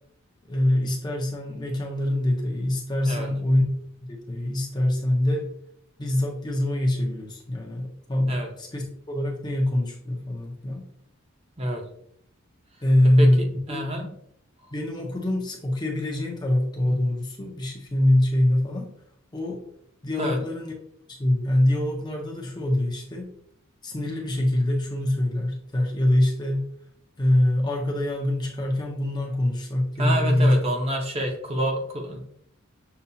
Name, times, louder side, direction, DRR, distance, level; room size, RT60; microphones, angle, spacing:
voice 1, 0.5-5.5 6.0-10.9 12.8-13.9 14.7-18.9 19.3-19.6 20.0-20.7 21.1-23.3 23.8-26.6 27.2-30.6, left 1 dB, 20° left, 0 dB, 0.6 m, -24 dB
voice 2, 13.2-14.2 16.8-17.0 20.2-20.4 30.0-32.2, right 1 dB, 25° right, 2 dB, 0.7 m, -28 dB
6.7 x 2.3 x 2.7 m, 0.69 s
head